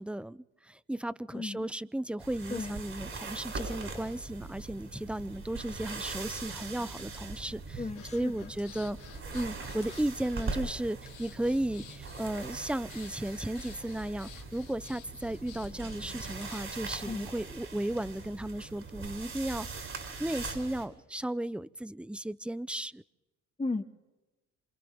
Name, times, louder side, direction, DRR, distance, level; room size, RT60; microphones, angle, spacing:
voice 1, 0.0-7.8 8.1-9.0 9.3-19.9 20.2-23.0, right 1 dB, 5° right, 0.6 m, -35 dB
voice 2, 1.3-1.7 2.5-2.8 7.8-8.5 17.1-17.3 23.6-23.8, left 3 dB, 20° left, 2.0 m, -35 dB
sound 1, 2.2-20.9, right 3 dB, 45° right, 7.7 m, -41 dB
Breathing, 7.9-16.8, left 9 dB, 85° left, 3.1 m, -53 dB
27.5 x 27.5 x 3.6 m
cardioid pair, 90°, 30 cm